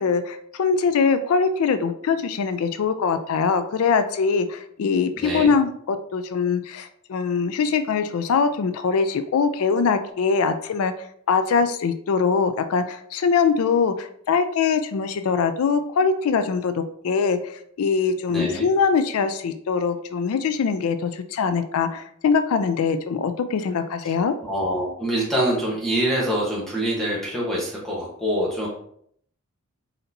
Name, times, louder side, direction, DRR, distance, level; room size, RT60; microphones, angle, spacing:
voice 1, 0.0-10.9 11.3-24.3, left 5 dB, 80° left, 9 dB, 0.4 m, -22 dB
voice 2, 5.2-5.5 18.3-18.6 24.4-28.7, right 1 dB, ahead, -6 dB, 1.0 m, -25 dB
4.2 x 3.9 x 2.6 m, 0.66 s
head